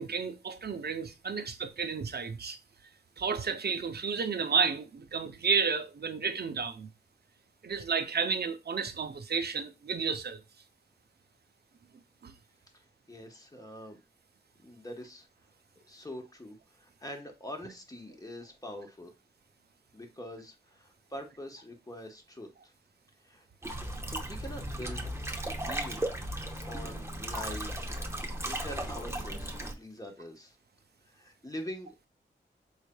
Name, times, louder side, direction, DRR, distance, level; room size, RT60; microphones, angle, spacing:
voice 1, 0.0-2.6 3.2-6.9 7.6-10.4 12.2-12.3, right 5 dB, 55° right, 0.6 m, -31 dB
voice 2, 13.1-14.0 14.6-15.3 15.9-19.1 19.9-22.7 23.2-23.4 24.1-25.1 25.6-26.1 26.6-27.9 28.4-30.6 31.1-32.1, left 1 dB, 20° left, 1.0 m, -44 dB
sound 1, 23.6-29.7, right 1 dB, 15° right, 0.7 m, -36 dB
4.0 x 3.2 x 2.2 m
cardioid pair, 45°, 20 cm